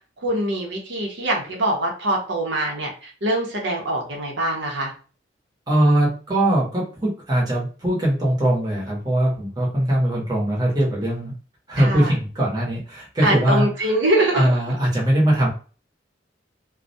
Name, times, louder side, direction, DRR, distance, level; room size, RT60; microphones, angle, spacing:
voice 1, 0.2-4.9 11.8-12.1 13.2-14.5, right 1 dB, 75° right, 0 dB, 0.7 m, -23 dB
voice 2, 5.7-11.3 11.7-13.9 14.3-15.5, right 1 dB, 20° right, -4 dB, 0.8 m, -21 dB
2.3 x 2.1 x 2.6 m, 0.37 s
head